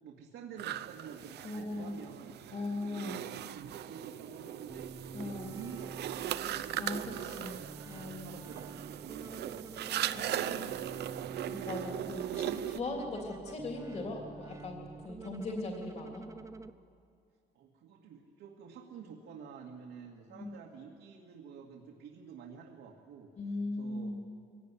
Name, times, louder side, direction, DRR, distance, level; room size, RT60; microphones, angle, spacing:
voice 1, 0.0-2.4 2.8-4.9 5.2-7.6 7.9-10.2 17.5-23.3 23.8-24.2, right 6 dB, 85° right, 0 dB, 2.1 m, -49 dB
sound 1, 0.6-12.8, right 12 dB, 65° right, 0.7 m, -39 dB
voice 2, 1.4-2.0 2.5-3.2 5.1-5.6 6.8-7.5 7.9-8.3 10.1-10.8 11.5-16.3 20.3-20.5 23.4-24.2, left 2 dB, 35° left, 1 dB, 3.2 m, -39 dB
sound 2, 4.7-16.7, right 4 dB, 15° right, 0.5 m, -48 dB
23.0 x 17.0 x 9.8 m, 2.4 s
cardioid pair, 160°, 19 cm